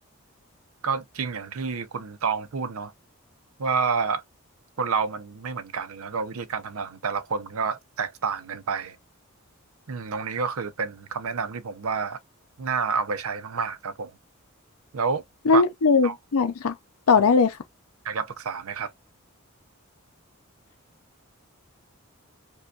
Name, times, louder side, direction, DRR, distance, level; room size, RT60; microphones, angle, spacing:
voice 1, 0.8-2.9 3.6-4.2 4.8-9.0 9.9-12.2 12.6-14.1 14.9-15.2 15.5-15.6 16.0-16.2 18.0-18.9, right 5 dB, 75° right, 0.6 m, -29 dB
voice 2, 15.5-16.7 17.1-17.6, left 4 dB, 80° left, 0.5 m, -19 dB
5.1 x 2.3 x 2.3 m
head